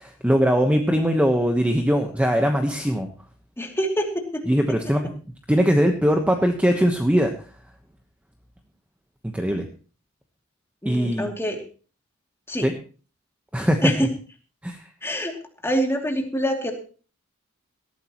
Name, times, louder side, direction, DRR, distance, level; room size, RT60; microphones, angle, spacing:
voice 1, 0.0-3.1 4.5-5.1 5.5-7.3 9.2-9.6 10.8-11.3 12.6-12.7 13.5-13.9 14.6-14.8, equal, 5° right, 4 dB, 1.1 m, -21 dB
voice 2, 3.6-4.0 10.8-11.6 12.5-12.7 13.8-13.9 15.0-15.3 15.6-16.7, equal, 10° left, 2 dB, 2.7 m, -25 dB
18.5 x 14.0 x 3.0 m, 0.37 s
head